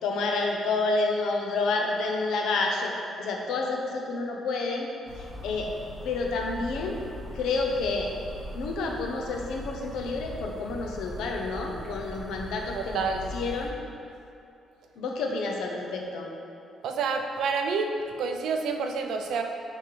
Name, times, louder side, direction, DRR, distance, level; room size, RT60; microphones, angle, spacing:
voice 1, 0.0-2.9 3.2-4.9 5.2-5.7 6.0-7.0 7.3-8.1 8.5-13.0 13.3-13.7 15.0-16.3, left 3 dB, 90° left, 1 dB, 0.8 m, -29 dB
sound 1, 5.1-13.7, left 1 dB, 5° left, 1.3 m, -40 dB
voice 2, 12.7-13.3 16.8-17.9 18.2-19.4, right 5 dB, 75° right, 4 dB, 0.6 m, -28 dB
7.5 x 5.3 x 3.4 m, 2.6 s
cardioid pair, 120°, 0 cm